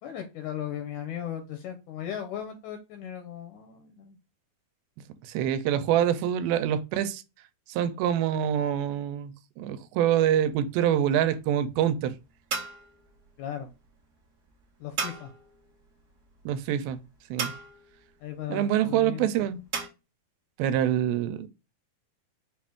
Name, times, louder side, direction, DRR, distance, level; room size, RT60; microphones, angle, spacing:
voice 1, 0.0-4.2 5.7-5.8 13.4-13.7 14.8-15.3 18.2-19.5, left 10 dB, 75° left, 1.9 m, -37 dB
voice 2, 5.2-7.2 7.7-12.1 16.5-17.0 17.3-17.5 18.5-19.6 20.6-21.5, right 10 dB, 85° right, 2.4 m, -25 dB
sound 1, 10.2-19.9, right 5 dB, 70° right, 0.9 m, -39 dB
6.1 x 2.5 x 3.5 m
omnidirectional pair, 4.2 m